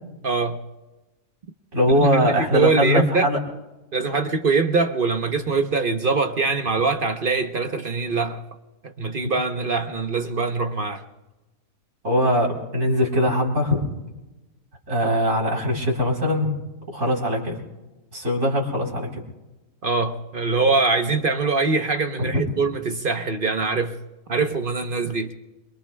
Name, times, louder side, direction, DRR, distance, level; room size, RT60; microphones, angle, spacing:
voice 1, 0.2-0.6 1.9-3.3 3.9-8.4 8.8-11.0 19.8-24.0 24.3-25.3, right 4 dB, 45° right, 0.9 m, -23 dB
voice 2, 1.7-3.4 12.0-13.9 14.9-16.5 16.9-17.6 18.1-19.2 22.2-22.4, equal, 60° right, 4.1 m, -21 dB
27.5 x 23.5 x 2.2 m
omnidirectional pair, 1.4 m